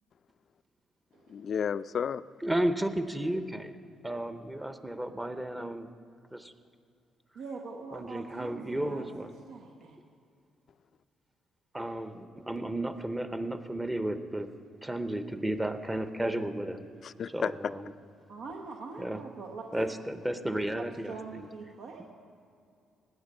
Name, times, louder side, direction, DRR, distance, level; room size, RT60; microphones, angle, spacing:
voice 1, 1.3-2.2 17.0-17.7, left 7 dB, 55° left, 16 dB, 0.3 m, -32 dB
voice 2, 2.4-3.7 4.0-5.9 6.3-6.5 7.9-9.3 11.7-14.5 14.8-16.8 17.3-17.9 19.0-19.2 19.7-21.5, right 1 dB, 15° right, 9 dB, 0.7 m, -33 dB
voice 3, 7.3-10.0 18.3-19.6 20.7-22.0, right 4 dB, 80° right, 0 dB, 1.1 m, -43 dB
18.5 x 8.2 x 5.4 m, 2.4 s
cardioid pair, 90°, 0 cm